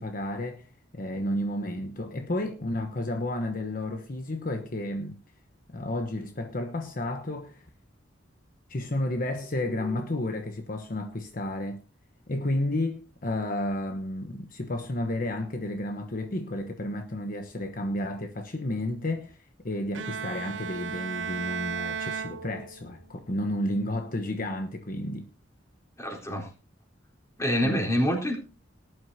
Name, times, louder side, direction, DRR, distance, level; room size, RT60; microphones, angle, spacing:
voice 1, 0.0-5.2 5.7-7.7 8.7-11.8 12.3-25.3 27.6-27.9, left 1 dB, 50° left, 1.1 m, -32 dB
Bowed string instrument, 19.9-23.1, right 6 dB, 85° right, 0.8 m, -35 dB
voice 2, 26.0-26.5 27.4-28.4, equal, 15° left, 4.1 m, -26 dB
19.0 x 11.5 x 2.8 m
head